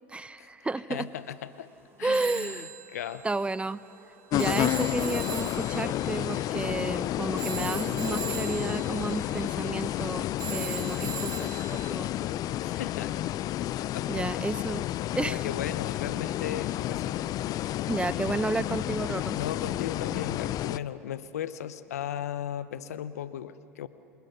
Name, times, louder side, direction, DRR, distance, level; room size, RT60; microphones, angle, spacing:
voice 1, 0.1-1.1 2.0-2.7 3.2-3.8 4.3-12.3 12.7-12.8 14.1-15.4 17.9-19.4, right 3 dB, 15° right, 17 dB, 0.7 m, -32 dB
voice 2, 0.9-1.7 2.0-3.3 12.6-13.3 13.6-14.5 15.2-17.4 19.3-23.9, left 10 dB, 85° left, 15 dB, 0.8 m, -37 dB
sound 1, 0.9-18.0, right 2 dB, 30° right, 5.8 m, -60 dB
Telephone, 2.1-11.9, right 12 dB, 55° right, 2.0 m, -40 dB
sound 2, 4.3-20.8, left 14 dB, 50° left, 0.5 m, -31 dB
28.0 x 20.0 x 5.9 m, 2.5 s
hypercardioid pair, 80°, 8 cm